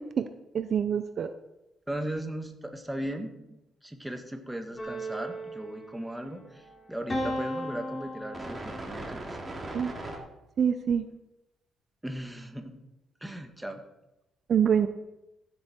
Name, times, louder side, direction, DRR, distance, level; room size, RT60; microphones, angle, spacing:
voice 1, 0.5-1.3 9.7-9.9 10.6-11.1 14.5-14.9, right 8 dB, 55° right, 10 dB, 0.7 m, -25 dB
voice 2, 1.9-9.4 12.0-12.8 13.2-13.8, right 1 dB, 5° right, 5 dB, 1.6 m, -37 dB
sound 1, 4.8-6.4 7.1-9.0, equal, 30° left, 3.5 m, -36 dB
sound 2, 6.5-10.2, right 2 dB, 25° right, 3.0 m, -41 dB
15.0 x 8.2 x 4.5 m, 0.91 s
cardioid pair, 90°, 0 cm